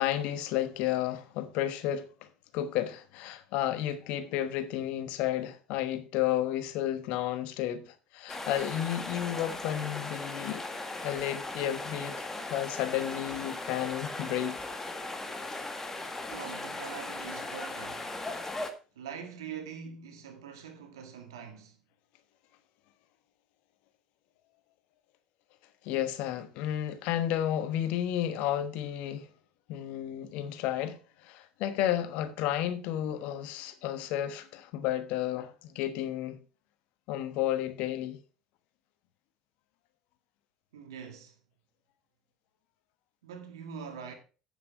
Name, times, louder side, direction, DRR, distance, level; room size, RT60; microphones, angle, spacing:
voice 1, 0.0-2.3 2.5-10.7 11.0-14.6 25.8-29.3 29.7-36.4 37.1-38.2, left 12 dB, 65° left, 1.2 m, -32 dB
sound 1, 8.3-18.7, left 2 dB, 15° left, 1.7 m, -38 dB
voice 2, 16.3-18.2 18.9-21.8 40.7-41.4 43.2-44.1, right 7 dB, 85° right, 2.0 m, -43 dB
8.5 x 7.2 x 4.7 m
hypercardioid pair, 70°, 2 cm